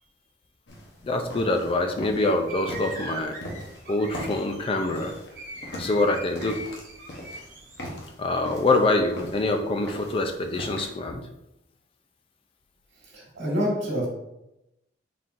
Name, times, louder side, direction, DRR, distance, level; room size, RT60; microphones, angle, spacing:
sound 1, 0.7-11.0, equal, 60° left, 0.8 m, -41 dB
voice 1, 1.0-3.4 3.9-5.1 5.7-6.6 8.2-11.3, left 2 dB, 30° left, 5 dB, 0.4 m, -25 dB
sound 2, 2.2-7.8, right 2 dB, 45° right, 1.0 m, -41 dB
voice 2, 13.0-14.1, equal, 65° right, -4 dB, 1.5 m, -27 dB
4.2 x 3.7 x 2.5 m, 0.90 s
head